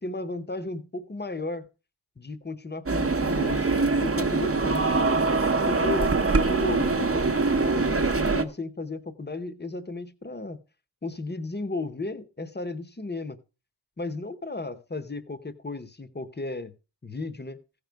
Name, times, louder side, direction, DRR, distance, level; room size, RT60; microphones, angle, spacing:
voice 1, 0.0-1.7 2.2-3.7 4.0-4.9 5.7-6.2 6.5-10.6 11.0-13.4 14.0-16.7 17.0-17.6, left 2 dB, 20° left, 0.9 m, -34 dB
sound 1, 2.9-8.4, right 3 dB, 30° right, 0.9 m, -23 dB
15.5 x 5.3 x 4.6 m
wide cardioid pair, 105°, 46 cm